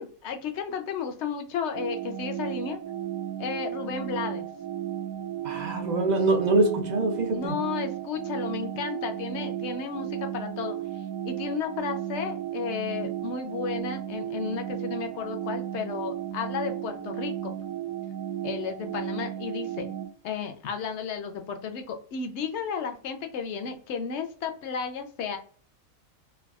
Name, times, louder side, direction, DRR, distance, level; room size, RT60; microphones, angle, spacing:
voice 1, 0.0-2.8 3.4-4.5 7.3-10.8 11.2-17.5 18.4-20.0 20.2-25.4, left 6 dB, 65° left, 6 dB, 0.8 m, -33 dB
sound 1, 1.7-20.1, right 11 dB, 80° right, 1.0 m, -34 dB
voice 2, 5.4-7.5, right 2 dB, 65° right, 3 dB, 0.4 m, -24 dB
3.4 x 2.3 x 2.3 m, 0.43 s
omnidirectional pair, 1.4 m